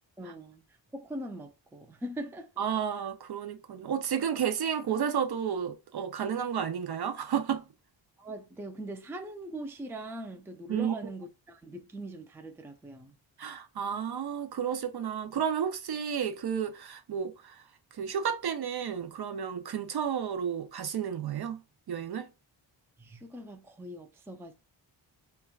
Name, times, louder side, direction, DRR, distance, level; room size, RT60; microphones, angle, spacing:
voice 1, 0.2-0.6 0.9-2.5 8.2-13.2 23.0-24.5, right 1 dB, 5° right, 0.4 m, -41 dB
voice 2, 2.6-7.7 10.7-11.0 13.4-17.6 17.9-21.6 21.9-22.3, right 8 dB, 55° right, 0.5 m, -32 dB
4.4 x 2.2 x 2.3 m
cardioid pair, 70°, 46 cm